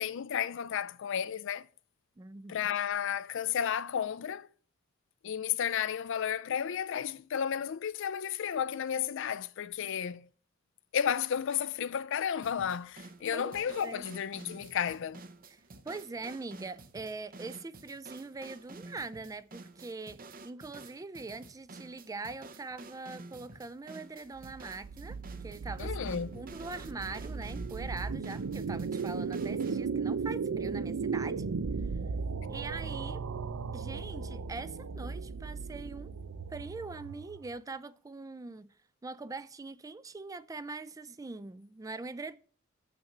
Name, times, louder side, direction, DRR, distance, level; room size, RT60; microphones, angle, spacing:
voice 1, 0.0-1.7 2.5-4.5 5.2-10.3 10.9-15.2 25.8-26.4, left 8 dB, 65° left, 0.4 m, -32 dB
voice 2, 2.2-2.8 13.3-14.1 15.5-31.4 32.5-33.2 33.7-36.1 36.5-38.7 39.0-42.4, right 3 dB, 15° right, 0.4 m, -42 dB
sound 1, 12.4-29.9, right 3 dB, 45° right, 0.7 m, -50 dB
sound 2, 24.4-37.6, right 5 dB, 90° right, 0.5 m, -36 dB
7.2 x 5.9 x 6.5 m
head